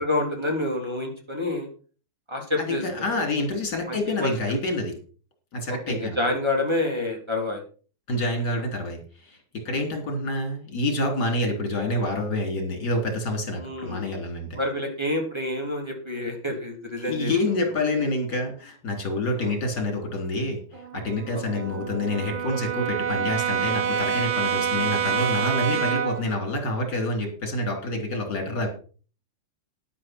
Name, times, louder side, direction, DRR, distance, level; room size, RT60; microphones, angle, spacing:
voice 1, 0.0-1.7 2.3-2.8 3.9-4.3 5.9-7.6 9.7-9.8 13.6-14.1 14.6-17.6 19.4-19.5 21.5-21.6 25.7-25.9, left 2 dB, 10° right, 2 dB, 3.3 m, -28 dB
voice 2, 2.6-4.9 5.5-6.2 8.1-9.4 9.6-14.6 17.1-28.7, left 1 dB, 50° left, 3 dB, 4.2 m, -27 dB
Brass instrument, 20.7-26.3, right 7 dB, 70° right, 2.3 m, -27 dB
12.5 x 10.5 x 4.5 m, 0.39 s
omnidirectional pair, 2.3 m